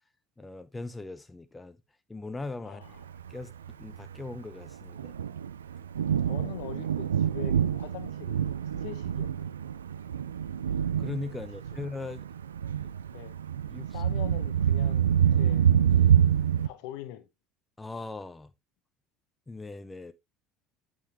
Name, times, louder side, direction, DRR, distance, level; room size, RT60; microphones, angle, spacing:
voice 1, 0.4-1.8 2.1-2.8 3.3-3.5 3.8-5.1 11.0-12.3 13.7-13.9 17.8-18.5 19.5-20.1, left 3 dB, 15° left, 0.7 m, -39 dB
voice 2, 2.6-3.0 6.2-9.7 13.1-13.4 13.9-16.4 16.6-17.3, left 14 dB, 65° left, 1.0 m, -44 dB
Thunder, 3.0-16.7, right 9 dB, 85° right, 0.3 m, -27 dB
8.5 x 5.5 x 3.0 m
hypercardioid pair, 65°, 0 cm